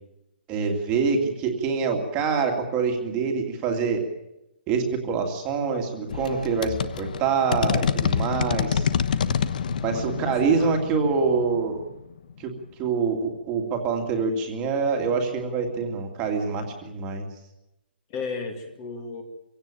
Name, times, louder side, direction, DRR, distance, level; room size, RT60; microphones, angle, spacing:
voice 1, 0.5-4.0 4.7-8.9 9.8-11.8 12.4-12.5 12.8-17.3, right 5 dB, 15° right, 3 dB, 2.4 m, -25 dB
sound 1, 6.1-12.5, left 7 dB, 50° left, 1.1 m, -27 dB
voice 2, 9.9-10.8 18.1-19.2, left 4 dB, 20° left, 6 dB, 2.2 m, -34 dB
25.0 x 17.0 x 9.0 m, 0.90 s
hypercardioid pair, 175°, 6 cm